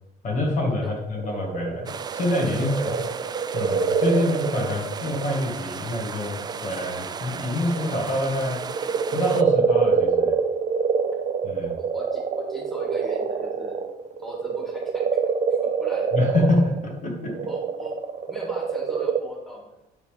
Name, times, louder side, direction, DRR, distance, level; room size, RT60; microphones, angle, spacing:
voice 1, 0.2-2.8 3.5-8.6 9.1-10.4 11.4-11.7 16.1-17.4, left 1 dB, 50° left, 0 dB, 2.2 m, -26 dB
sound 1, 0.8-5.8 6.3-8.0 8.5-19.2, right 6 dB, 45° right, 0.9 m, -25 dB
sound 2, 1.9-9.4, right 6 dB, 25° right, 0.3 m, -36 dB
voice 2, 2.5-3.3 11.6-13.8 14.2-15.1 15.6-16.1 17.5-18.0 18.3-19.7, equal, ahead, -2 dB, 2.1 m, -39 dB
10.5 x 3.9 x 5.1 m, 0.91 s
cardioid pair, 110°, 17 cm